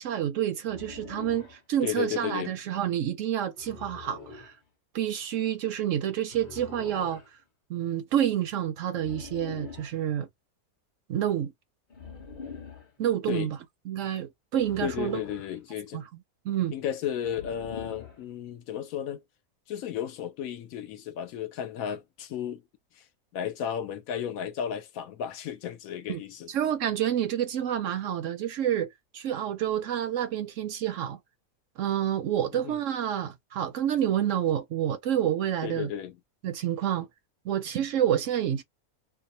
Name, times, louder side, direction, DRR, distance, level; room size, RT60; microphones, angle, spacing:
voice 1, 0.0-4.5 4.9-7.2 7.7-10.3 11.1-11.5 13.0-13.6 13.9-15.2 15.9-16.0 16.4-16.7 26.1-26.2 26.5-31.2 31.8-35.9 36.4-37.1 37.4-38.6, right 10 dB, 70° right, 0.8 m, -28 dB
sound 1, 0.6-1.6 3.6-4.5 6.3-7.3 8.9-10.0 11.9-12.9 14.5-15.6 17.2-18.2, left 5 dB, 35° left, 1.0 m, -44 dB
voice 2, 1.8-2.5 13.3-13.5 14.8-16.0 16.7-19.2 19.7-22.6 23.3-26.5 32.5-32.8 35.6-36.2, left 9 dB, 75° left, 1.0 m, -33 dB
2.6 x 2.1 x 2.7 m
omnidirectional pair, 1.6 m